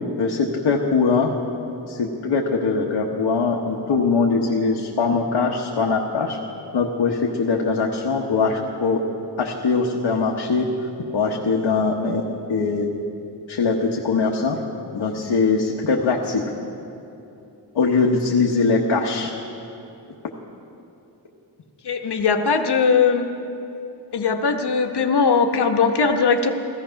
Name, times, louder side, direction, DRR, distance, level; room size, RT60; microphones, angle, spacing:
voice 1, 0.2-1.3 1.9-6.4 6.7-9.0 9.4-10.7 11.1-12.9 13.5-14.6 14.9-16.4 17.7-19.3, left 4 dB, 90° left, -1 dB, 1.2 m, -21 dB
voice 2, 21.8-23.3 24.1-26.5, left 5 dB, 65° left, 5 dB, 1.1 m, -19 dB
15.5 x 14.5 x 5.7 m, 2.8 s
wide cardioid pair, 125°, 44 cm